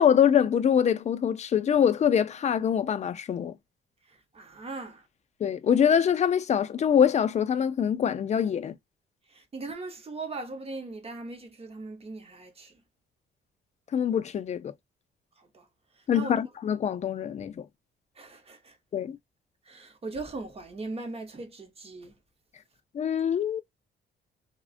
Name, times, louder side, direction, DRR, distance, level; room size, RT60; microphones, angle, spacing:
voice 1, 0.0-3.6 5.4-8.7 13.9-14.7 16.1-17.7 18.9-19.2 22.9-23.6, left 8 dB, 35° left, 0.4 m, -24 dB
voice 2, 4.1-5.1 9.3-12.8 15.4-15.7 15.9-16.4 18.2-18.8 19.6-22.2, right 3 dB, 30° right, 0.9 m, -39 dB
2.3 x 2.1 x 2.4 m
cardioid pair, 90°, 20 cm